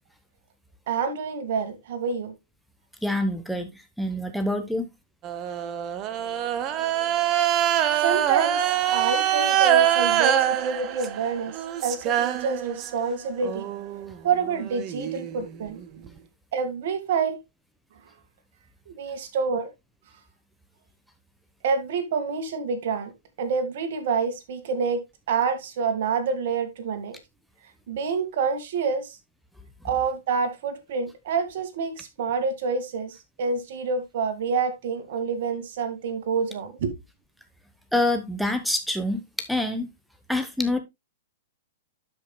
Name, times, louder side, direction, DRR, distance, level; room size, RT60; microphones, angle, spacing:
voice 1, 0.9-2.3 8.0-8.6 8.9-13.7 14.2-15.8 16.5-17.4 18.9-19.7 21.6-23.1 23.4-27.2 27.9-29.2 29.8-37.0, right 5 dB, 60° right, 1.9 m, -27 dB
voice 2, 3.0-3.7 4.0-4.9 37.9-39.2 39.5-39.9 40.3-40.8, left 1 dB, ahead, 1.0 m, -26 dB
sound 1, 5.2-13.1 13.4-16.1, right 11 dB, 35° right, 0.9 m, -25 dB
12.0 x 5.3 x 2.2 m
hypercardioid pair, 115°, 0 cm